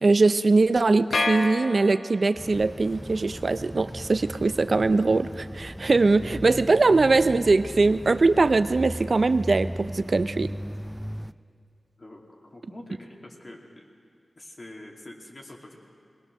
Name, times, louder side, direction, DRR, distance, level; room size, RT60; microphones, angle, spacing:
voice 1, 0.0-10.5, right 3 dB, 55° right, 12 dB, 0.5 m, -21 dB
sound 1, 1.1-2.5, left 3 dB, 80° left, 1.2 m, -29 dB
sound 2, 2.3-11.3, equal, 5° right, 0.4 m, -37 dB
voice 2, 12.0-13.8 14.4-15.8, left 1 dB, 45° left, 0 dB, 2.6 m, -45 dB
21.0 x 19.5 x 6.4 m, 2.3 s
wide cardioid pair, 65°, 0 cm